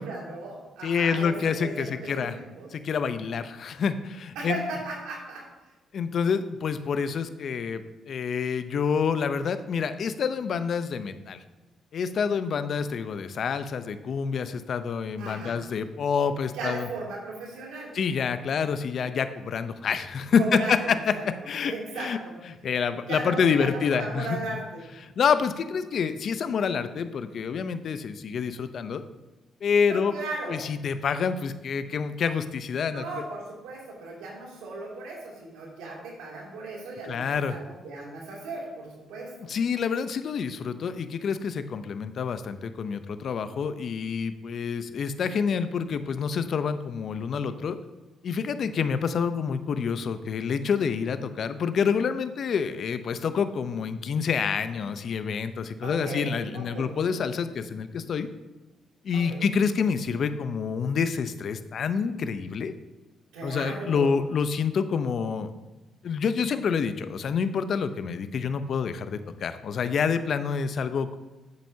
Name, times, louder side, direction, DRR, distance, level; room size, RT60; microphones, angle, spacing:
voice 1, 0.0-2.7 4.3-5.5 15.2-15.6 16.5-17.9 20.4-21.2 21.7-22.3 23.0-24.8 29.9-30.6 32.9-39.5 55.8-56.9 59.3-59.4 63.3-64.2, right 3 dB, 85° right, -3 dB, 2.6 m, -36 dB
voice 2, 0.8-2.4 2.7-4.6 5.9-11.4 11.9-16.9 17.9-21.1 21.5-22.2 22.6-24.4 25.0-29.0 29.6-30.2 30.5-33.2 37.1-37.6 39.5-47.8 48.2-58.3 59.0-62.7 63.4-65.5 66.0-71.2, left 6 dB, 60° left, 11 dB, 0.6 m, -27 dB
9.6 x 8.3 x 2.8 m, 1.1 s
supercardioid pair, 55°, 0 cm